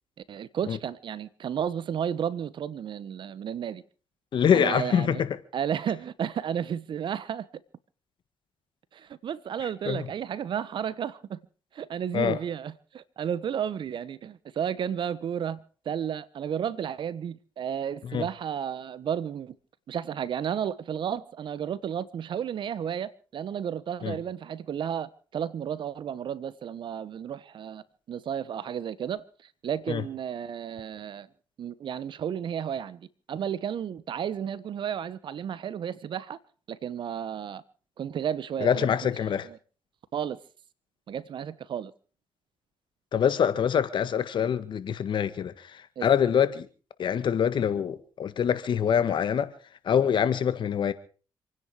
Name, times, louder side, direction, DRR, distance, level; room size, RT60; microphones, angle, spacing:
voice 1, 0.3-3.8 4.5-5.2 5.5-7.5 8.9-11.4 11.7-19.5 19.9-31.3 31.6-36.4 36.7-37.6 38.0-38.9 39.5-39.6 40.1-40.4 41.1-41.9 46.0-46.1, right 8 dB, 65° right, 1.2 m, -32 dB
voice 2, 4.3-5.4 9.8-10.1 12.1-12.4 18.0-18.3 24.0-24.1 29.9-30.0 38.6-39.5 43.1-46.7 47.0-49.5 49.8-50.9, left 8 dB, 65° left, 1.7 m, -25 dB
27.0 x 10.0 x 4.9 m
supercardioid pair, 60°, 9 cm